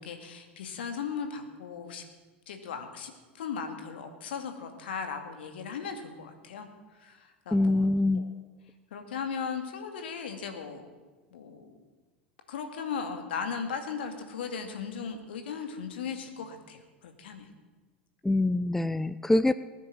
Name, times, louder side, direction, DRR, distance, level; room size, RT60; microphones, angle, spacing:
voice 1, 0.0-2.0 2.5-6.7 7.0-7.9 8.1-8.3 8.9-10.8 11.3-11.7 12.5-17.5, left 6 dB, 65° left, 6 dB, 2.3 m, -37 dB
voice 2, 7.5-8.2 18.2-19.5, left 2 dB, 5° left, 15 dB, 0.5 m, -24 dB
19.0 x 9.9 x 7.6 m, 1.3 s
figure-of-eight pair, 80°, 6 cm